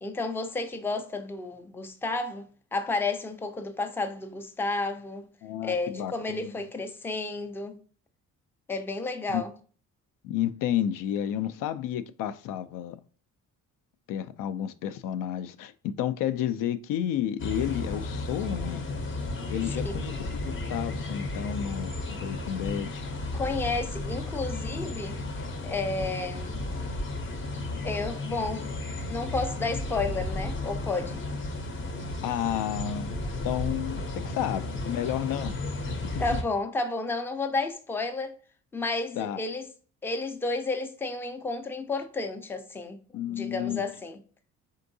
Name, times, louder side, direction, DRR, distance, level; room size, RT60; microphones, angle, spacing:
voice 1, 0.0-5.3 5.6-7.8 8.7-9.5 19.8-20.0 23.3-25.2 25.6-26.6 27.8-28.7 29.1-31.2 36.2-38.4 38.7-39.7 40.0-44.2, left 3 dB, 5° left, 0.4 m, -31 dB
voice 2, 5.4-6.5 9.3-9.4 10.2-13.0 14.1-18.8 19.5-23.0 32.2-33.2 33.4-35.6 39.2-39.4 43.1-43.8, left 10 dB, 85° left, 0.5 m, -31 dB
sound 1, 17.4-36.4, left 2 dB, 40° left, 0.7 m, -33 dB
4.4 x 3.8 x 2.6 m
cardioid pair, 145°, 32 cm